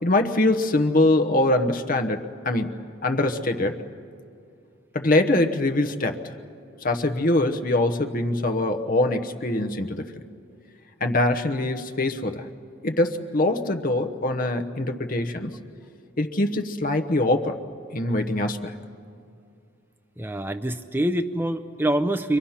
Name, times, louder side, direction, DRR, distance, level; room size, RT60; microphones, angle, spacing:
voice 1, 0.0-3.8 4.9-6.2 6.8-10.1 11.0-12.5 12.8-15.5 16.2-17.6 17.9-18.8, left 2 dB, 40° left, 6 dB, 1.0 m, -23 dB
voice 2, 20.2-22.4, right 1 dB, 10° right, 7 dB, 0.5 m, -25 dB
29.0 x 24.5 x 5.8 m, 2.4 s
head